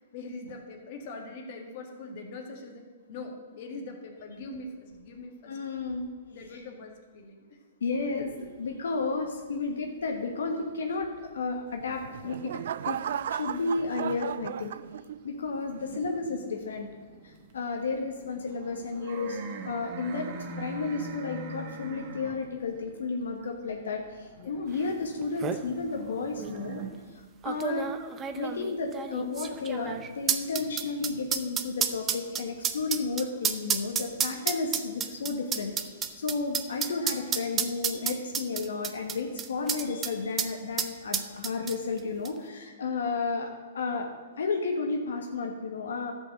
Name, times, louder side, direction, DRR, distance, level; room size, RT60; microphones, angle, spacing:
voice 1, 0.1-2.8 3.1-5.6 6.3-7.6 24.4-24.7, left 3 dB, 45° left, 2 dB, 2.0 m, -42 dB
voice 2, 5.5-6.0 6.5-6.6 7.8-13.0 13.3-14.7 15.2-16.9 17.2-20.3 20.6-27.9 28.4-44.1 44.4-46.1, left 4 dB, 85° left, 2 dB, 1.3 m, -32 dB
sound 1, 8.0-10.9 11.2-13.8 14.2-26.9, right 4 dB, 35° right, 1.2 m, -44 dB
sound 2, 11.8-15.4 15.9-16.3, right 9 dB, 65° right, 0.3 m, -35 dB
sound 3, 24.9-25.0 25.2-25.6 26.4-26.5 27.4-40.1 40.4-40.5 40.8-42.0 42.3-42.4, right 8 dB, 20° right, 0.6 m, -30 dB
12.0 x 5.3 x 7.7 m, 1.4 s
hypercardioid pair, 150°, 0 cm